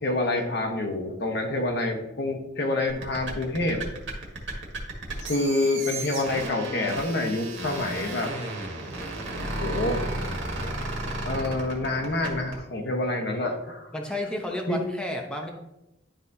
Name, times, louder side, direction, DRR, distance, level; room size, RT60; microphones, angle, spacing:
voice 1, 0.0-3.8 5.2-8.3 9.6-10.1 11.2-13.9 14.7-14.8, left 2 dB, 65° left, 3 dB, 1.2 m, -27 dB
sound 1, 2.9-12.6, right 2 dB, 90° right, 1.8 m, -33 dB
voice 2, 13.9-15.5, left 1 dB, 5° left, 1 dB, 0.7 m, -31 dB
11.5 x 4.1 x 2.7 m, 0.91 s
head